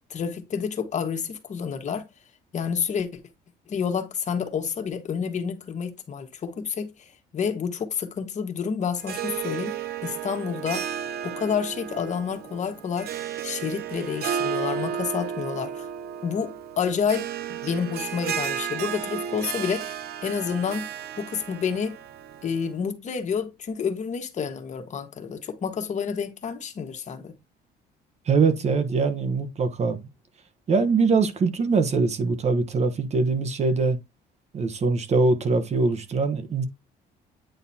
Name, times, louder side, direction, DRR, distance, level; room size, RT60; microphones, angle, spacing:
voice 1, 0.1-2.0 2.5-3.2 3.7-9.7 10.0-10.9 11.2-13.1 13.4-15.9 16.2-20.9 21.2-22.0 22.4-27.3, left 6 dB, 45° left, 1.5 m, -29 dB
Harp, 9.0-22.7, right 8 dB, 70° right, 0.9 m, -33 dB
voice 2, 28.3-30.0 30.7-34.0 34.5-36.6, right 4 dB, 40° right, 1.2 m, -23 dB
9.0 x 4.0 x 2.8 m
cardioid pair, 110°, 17 cm